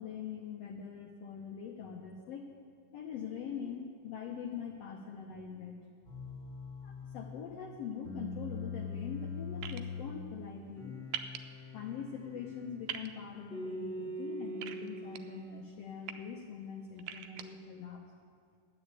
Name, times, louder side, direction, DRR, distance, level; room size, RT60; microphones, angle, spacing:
voice 1, 0.0-2.5 2.9-5.8 6.8-11.0 11.7-18.0, left 7 dB, 70° left, 1 dB, 1.6 m, -43 dB
sound 1, 6.0-7.3 8.0-10.1 10.8-12.7 13.5-15.5, left 2 dB, 20° left, 1.5 m, -42 dB
sound 2, 9.6-9.8 11.1-11.4 12.9-13.1 14.6-15.2 15.8-16.1 17.0-17.4, right 11 dB, 85° right, 2.2 m, -40 dB
10.5 x 8.5 x 8.3 m, 2.2 s
omnidirectional pair, 3.7 m